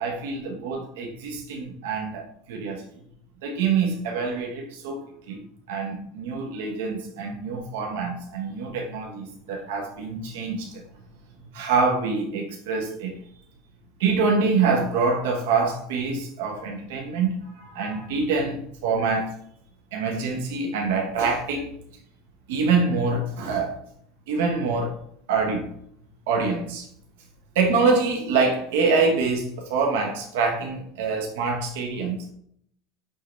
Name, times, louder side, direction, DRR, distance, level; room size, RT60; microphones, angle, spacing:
voice 1, 0.0-2.8 3.4-5.4 5.7-10.8 11.5-13.2 14.0-19.3 19.9-21.7 22.5-23.8 24.3-25.0 25.3-25.7 26.3-26.9 27.5-32.3, right 4 dB, 85° right, 1 dB, 1.3 m, -25 dB
8.5 x 3.8 x 3.3 m, 0.67 s
supercardioid pair, 145°, 0 cm